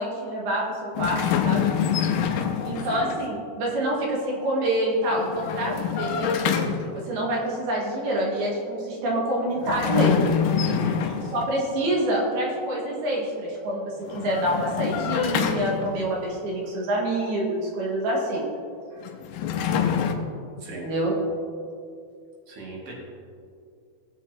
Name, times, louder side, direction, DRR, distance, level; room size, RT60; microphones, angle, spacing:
voice 1, 0.0-1.7 2.6-6.6 6.9-10.2 11.3-18.4 20.7-21.1, right 1 dB, 80° right, -3 dB, 3.8 m, -27 dB
sound 1, 1.0-3.3 5.1-7.1 9.6-11.6 14.0-16.2 19.0-20.1, left 7 dB, 85° left, 2.4 m, -26 dB
voice 2, 2.8-3.1 10.6-11.3 18.9-19.1 20.6-20.9 22.5-22.9, right 2 dB, 45° right, -3 dB, 2.7 m, -39 dB
17.0 x 7.2 x 2.9 m, 2.4 s
omnidirectional pair, 4.4 m